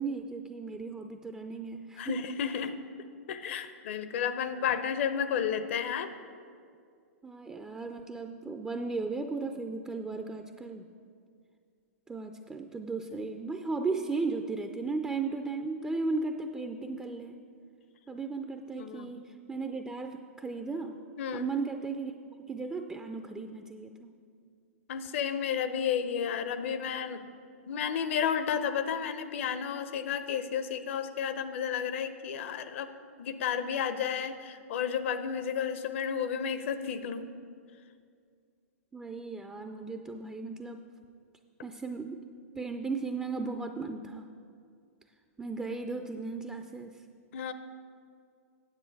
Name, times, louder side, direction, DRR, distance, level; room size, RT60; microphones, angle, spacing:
voice 1, 0.0-2.2 7.2-10.9 12.1-17.4 18.1-21.0 21.3-24.2 38.9-40.8 41.6-42.2 42.6-44.3 45.4-47.0, right 3 dB, 10° right, 5 dB, 0.4 m, -36 dB
voice 2, 2.0-2.8 3.3-6.1 18.8-19.1 21.2-21.5 24.9-27.2 27.7-32.9 33.2-37.4 47.3-47.5, left 7 dB, 55° left, 11 dB, 0.6 m, -32 dB
9.3 x 7.7 x 4.7 m, 2.3 s
hypercardioid pair, 115°, 8 cm